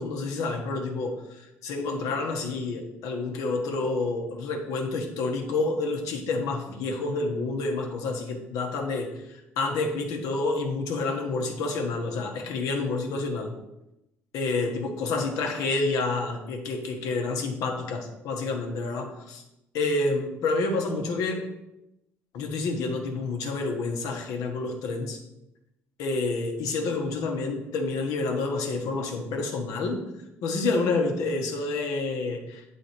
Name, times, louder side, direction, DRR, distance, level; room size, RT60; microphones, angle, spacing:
voice 1, 0.0-13.5 14.3-19.4 19.7-21.5 22.3-25.2 26.0-30.1 30.4-32.6, left 3 dB, 75° left, 2 dB, 1.2 m, -29 dB
8.1 x 3.9 x 4.4 m, 0.91 s
supercardioid pair, 75°, 6 cm